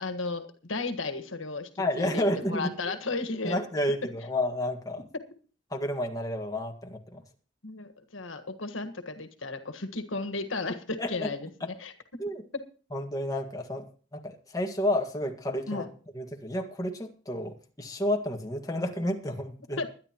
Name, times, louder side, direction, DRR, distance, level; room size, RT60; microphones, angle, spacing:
voice 1, 0.0-1.7 1.9-3.6 7.6-11.9 15.7-15.9 19.8-19.9, left 3 dB, 85° left, 10 dB, 1.6 m, -34 dB
voice 2, 1.8-2.9 3.4-5.1 5.7-7.2 11.0-11.3 12.2-12.4 12.9-13.8 14.1-15.8 16.1-19.8, left 1 dB, 20° left, 3 dB, 1.8 m, -31 dB
22.5 x 10.5 x 3.0 m, 0.40 s
head